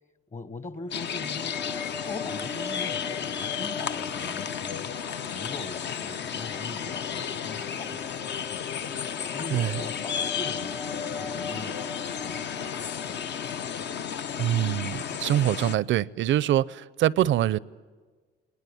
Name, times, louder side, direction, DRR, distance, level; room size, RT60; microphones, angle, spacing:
voice 1, 0.3-4.9 5.3-8.7 9.3-13.3, left 3 dB, 40° left, 1.3 m, -42 dB
sound 1, 0.9-15.8, left 8 dB, 60° left, 0.8 m, -33 dB
sound 2, 0.9-14.3, left 4 dB, 20° left, 0.8 m, -41 dB
voice 2, 9.5-9.8 14.4-17.6, right 12 dB, 70° right, 0.6 m, -24 dB
20.5 x 19.5 x 9.8 m
cardioid pair, 90°, 20 cm